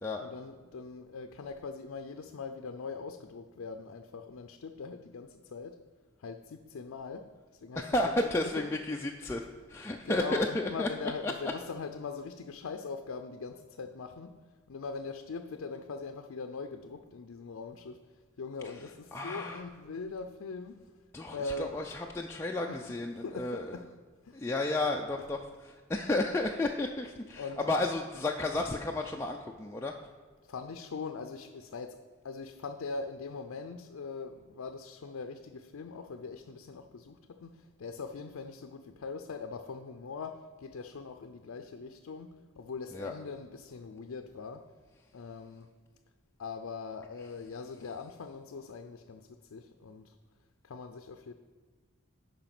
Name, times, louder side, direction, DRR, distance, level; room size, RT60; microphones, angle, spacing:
voice 1, 0.2-5.8 6.2-8.2 8.6-8.7 9.4-9.5 10.0-14.3 14.7-18.0 18.4-20.9 21.3-21.8 22.7-22.8 23.2-23.8 24.2-24.4 27.4-27.7 30.4-32.0 32.2-44.6 45.1-45.7 46.4-50.2 50.6-51.3, left 4 dB, 80° left, 6 dB, 0.5 m, -41 dB
voice 2, 7.8-9.4 9.7-10.9 11.2-11.3 19.1-19.6 21.1-23.8 24.3-29.9 42.9-43.1, left 2 dB, 10° left, 0 dB, 0.3 m, -32 dB
8.9 x 5.2 x 5.8 m, 1.5 s
head